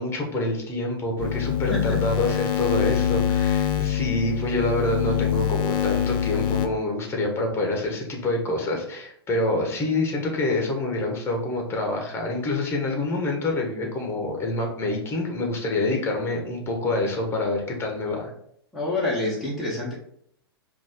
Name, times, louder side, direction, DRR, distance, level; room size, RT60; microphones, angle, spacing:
voice 1, 0.0-18.3, left 2 dB, 20° left, 2 dB, 1.4 m, -26 dB
sound 1, 1.2-6.7, left 10 dB, 50° left, 0.6 m, -24 dB
voice 2, 1.7-2.0 18.7-19.9, left 2 dB, ahead, -8 dB, 1.4 m, -27 dB
5.0 x 2.8 x 3.7 m, 0.70 s
hypercardioid pair, 105°, 13 cm